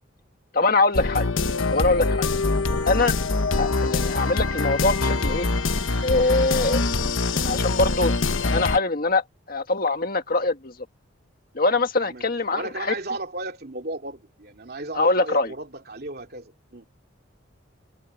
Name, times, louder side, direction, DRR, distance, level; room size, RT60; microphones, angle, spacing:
voice 1, 0.5-1.3 1.7-2.3 2.9-3.1 3.5-5.5 6.0-6.8 7.3-10.7 11.5-12.9 14.9-15.5, left 3 dB, 45° left, 1.7 m, -23 dB
sound 1, 0.9-8.8, left 3 dB, 80° left, 1.2 m, -24 dB
voice 2, 12.0-16.9, right 2 dB, 50° right, 2.7 m, -35 dB
head